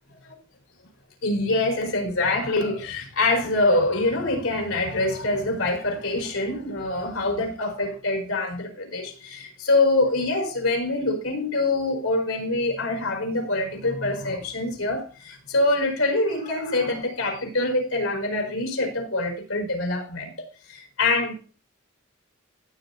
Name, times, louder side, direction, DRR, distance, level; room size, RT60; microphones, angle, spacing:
voice 1, 1.2-20.3 20.7-21.3, left 2 dB, 90° left, 4.7 m, -25 dB
16.0 x 8.3 x 2.9 m
head